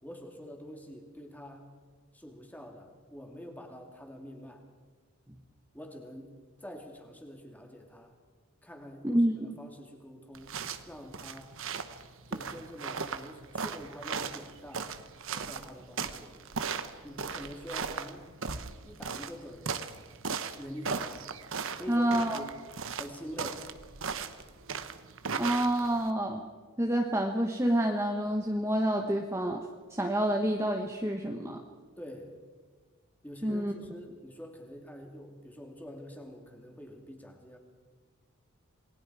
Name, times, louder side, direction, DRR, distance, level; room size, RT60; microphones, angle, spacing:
voice 1, 0.0-1.7 2.1-4.6 5.7-6.3 6.6-8.2 8.6-10.5 10.9-11.5 12.3-14.9 15.3-16.3 17.0-18.5 18.8-19.9 20.5-21.3 21.7-22.6 22.9-23.7 32.0-32.4 33.2-37.6, equal, 5° left, 2 dB, 2.6 m, -46 dB
voice 2, 9.0-9.4 21.9-22.4 25.4-26.4 26.8-31.6 33.4-33.7, right 1 dB, 10° right, 2 dB, 1.2 m, -28 dB
sound 1, 10.3-26.1, right 5 dB, 60° right, 1.1 m, -37 dB
28.0 x 20.0 x 4.9 m, 1.5 s
head